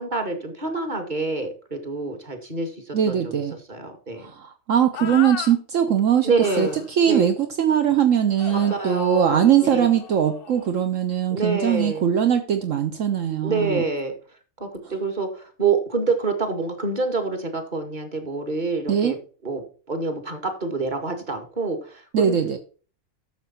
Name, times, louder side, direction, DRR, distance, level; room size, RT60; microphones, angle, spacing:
voice 1, 0.0-2.7 3.1-3.3 3.7-4.3 5.0-5.1 6.2-7.3 8.5-9.9 11.3-12.1 13.4-14.1 14.6-19.2 19.4-22.4, right 4 dB, 35° right, 4 dB, 2.3 m, -27 dB
voice 2, 2.9-3.6 4.2-13.8 14.8-14.9 18.9-19.1 22.1-22.6, right 9 dB, 70° right, 7 dB, 1.3 m, -21 dB
sound 1, 4.9-5.6 6.4-6.9 8.4-10.7, left 9 dB, 55° left, 0.7 m, -36 dB
13.0 x 6.9 x 4.4 m, 0.39 s
omnidirectional pair, 1.4 m